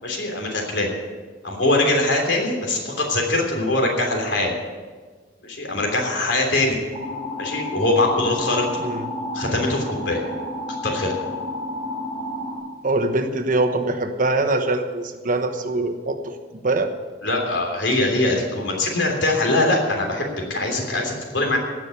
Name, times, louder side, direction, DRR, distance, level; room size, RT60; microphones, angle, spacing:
voice 1, 0.0-0.9 1.4-4.5 5.4-6.8 7.4-8.6 9.3-10.2 10.8-11.1 17.2-21.6, left 2 dB, 75° left, 1 dB, 3.3 m, -22 dB
sound 1, 6.9-12.6, left 2 dB, 40° left, 5.3 m, -31 dB
voice 2, 12.8-16.2 16.6-16.9, right 2 dB, 45° right, 7 dB, 1.1 m, -23 dB
17.5 x 6.2 x 8.3 m, 1.4 s
head